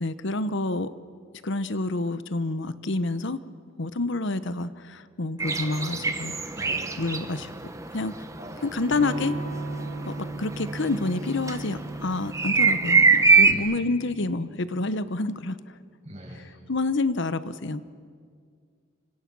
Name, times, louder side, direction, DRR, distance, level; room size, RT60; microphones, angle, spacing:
voice 1, 0.0-0.9 1.4-3.4 3.8-6.3 7.0-7.5 7.9-8.1 8.6-9.3 10.0-15.6 16.3-17.8, left 2 dB, 55° left, 13 dB, 0.9 m, -28 dB
sound 1, 5.4-13.5, right 4 dB, 15° right, 1.1 m, -23 dB
voice 2, 6.5-6.9 8.4-8.5 13.5-13.6 16.0-16.5, equal, 30° right, -3 dB, 7.8 m, -41 dB
Electric guitar / Strum, 8.9-14.6, right 2 dB, 85° right, 4.7 m, -37 dB
29.5 x 25.5 x 6.2 m, 2.1 s
head